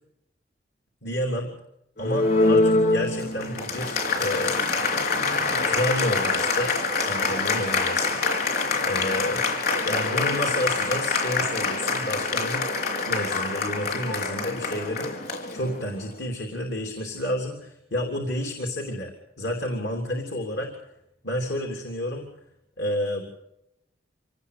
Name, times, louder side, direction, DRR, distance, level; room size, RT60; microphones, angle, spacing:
voice 1, 1.0-1.5 2.0-4.6 5.6-8.2 8.8-9.5 9.8-12.7 13.1-20.9 21.2-22.2 22.8-23.3, left 1 dB, 80° left, 2 dB, 3.4 m, -30 dB
Applause, 2.0-16.1, left 3 dB, 55° left, 4.6 m, -25 dB
26.0 x 18.5 x 6.8 m, 0.83 s
head